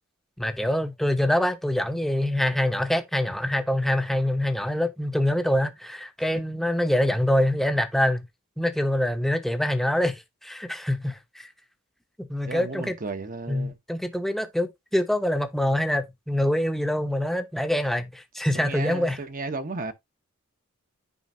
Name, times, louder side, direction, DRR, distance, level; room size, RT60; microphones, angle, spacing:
voice 1, 0.4-8.2 8.6-11.5 12.2-13.0 13.5-19.2, left 1 dB, ahead, 0.9 m, -25 dB
voice 2, 12.5-13.8 18.5-19.9, right 3 dB, 40° right, 0.9 m, -34 dB
9.6 x 5.2 x 2.7 m
head